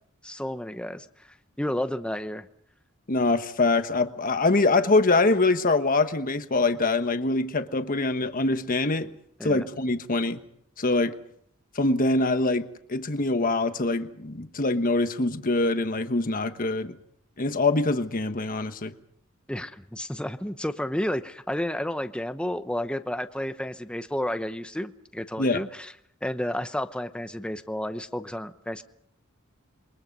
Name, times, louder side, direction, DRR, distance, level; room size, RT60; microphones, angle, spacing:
voice 1, 0.2-1.1 1.6-2.5 9.4-9.7 19.5-25.9 26.2-28.8, left 1 dB, 5° left, 0.9 m, -31 dB
voice 2, 3.1-9.1 9.4-10.4 10.8-11.1 11.7-16.9 17.4-18.9 25.4-25.6, left 3 dB, 40° left, 1.3 m, -24 dB
27.5 x 23.0 x 5.4 m
head